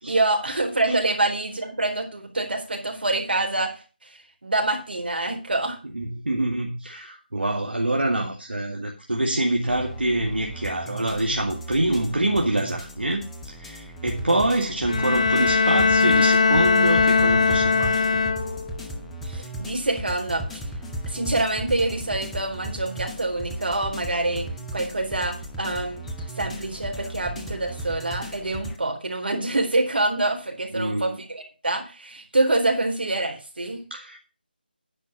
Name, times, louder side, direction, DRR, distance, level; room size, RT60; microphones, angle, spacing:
voice 1, 0.1-5.8 19.2-20.7 21.1-24.5 24.7-26.0 26.4-33.8, right 2 dB, 70° right, 4 dB, 4.0 m, -26 dB
voice 2, 5.9-13.3 13.6-18.2 30.7-31.2 33.9-34.2, right 1 dB, 90° right, 1 dB, 2.3 m, -25 dB
sound 1, 9.7-28.8, right 1 dB, 5° left, 0.7 m, -36 dB
Bowed string instrument, 14.9-18.8, left 4 dB, 40° left, 0.7 m, -20 dB
10.0 x 5.6 x 7.5 m, 0.34 s
figure-of-eight pair, 165°, 6 cm